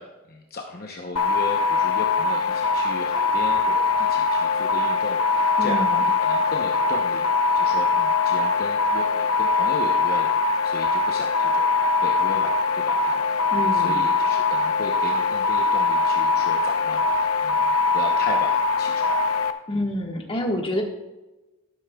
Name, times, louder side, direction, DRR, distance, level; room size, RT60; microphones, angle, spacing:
voice 1, 0.0-11.7 12.0-13.2 13.6-19.2, left 2 dB, 45° left, 1 dB, 0.8 m, -36 dB
sound 1, 1.2-19.5, left 4 dB, 90° left, 0.7 m, -22 dB
voice 2, 5.6-6.1 13.5-14.1 19.7-20.8, left 1 dB, 25° left, 1 dB, 1.5 m, -27 dB
12.5 x 11.5 x 2.3 m, 1.1 s
head